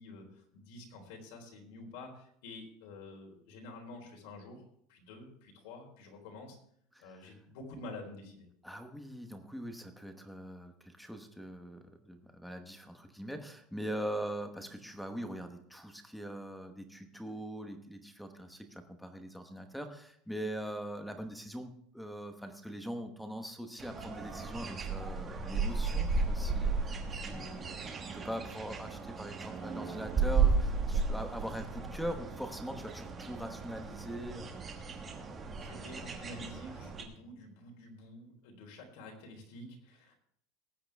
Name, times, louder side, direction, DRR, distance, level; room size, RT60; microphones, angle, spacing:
voice 1, 0.0-6.6 7.0-8.5 35.5-40.1, left 2 dB, 60° left, 1 dB, 3.7 m, -49 dB
voice 2, 8.6-27.9 28.2-34.5, equal, ahead, 6 dB, 1.0 m, -42 dB
sound 1, 23.8-37.0, right 4 dB, 15° right, 1.3 m, -34 dB
19.0 x 8.7 x 3.5 m, 0.65 s
supercardioid pair, 180°, 0 cm